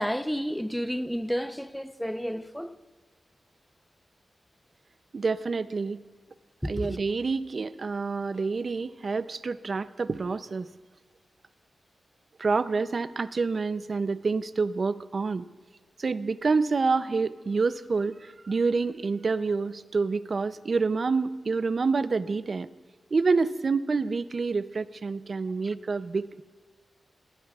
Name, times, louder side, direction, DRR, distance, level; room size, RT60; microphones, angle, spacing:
voice 1, 0.0-2.7 6.6-7.0, equal, ahead, 0.6 m, -31 dB
voice 2, 5.1-6.0 6.7-10.7 12.4-15.5 16.0-22.7 23.1-26.4, right 4 dB, 50° right, 0.5 m, -27 dB
21.5 x 16.5 x 2.4 m
cardioid pair, 80°, 0 cm